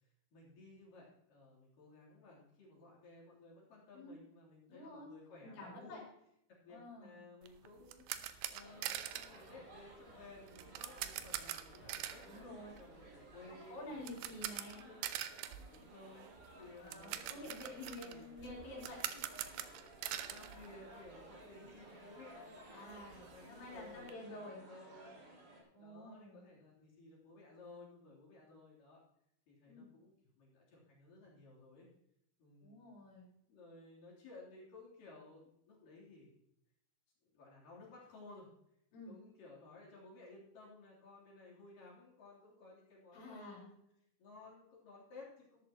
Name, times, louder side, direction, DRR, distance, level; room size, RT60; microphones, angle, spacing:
voice 1, 0.3-6.0 6.5-12.5 12.8-16.3 16.6-18.4 19.1-19.3 20.1-29.0 29.5-31.9 32.4-32.9 33.5-36.3 37.3-38.5 39.1-43.8 44.2-45.6, left 3 dB, 45° left, -5 dB, 4.5 m, -57 dB
voice 2, 4.7-5.1 5.4-6.0 6.7-7.2 12.3-12.8 13.7-14.8 16.8-19.0 22.7-24.6 25.7-26.5 29.7-29.9 32.6-33.3 38.9-39.2 43.1-43.7, left 1 dB, 60° left, -3 dB, 6.1 m, -50 dB
sound 1, 7.4-21.4 21.7-21.8 22.2-22.3 22.6-24.1, right 12 dB, 90° right, 2.4 m, -45 dB
sound 2, 8.6-25.6, right 1 dB, 35° right, 2.7 m, -58 dB
13.0 x 12.5 x 3.0 m, 0.76 s
omnidirectional pair, 5.9 m